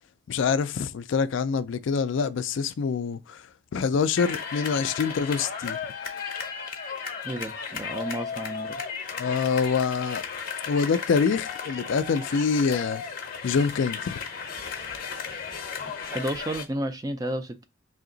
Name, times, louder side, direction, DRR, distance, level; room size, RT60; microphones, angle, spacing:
voice 1, 0.3-3.4 3.7-5.8 9.2-10.2 10.7-13.0 13.4-14.2, left 5 dB, 65° left, 0.3 m, -25 dB
sound 1, 4.2-16.7, left 6 dB, 45° left, 0.7 m, -35 dB
voice 2, 7.2-8.7 16.0-17.6, right 1 dB, 20° right, 0.4 m, -32 dB
3.3 x 2.9 x 3.8 m
head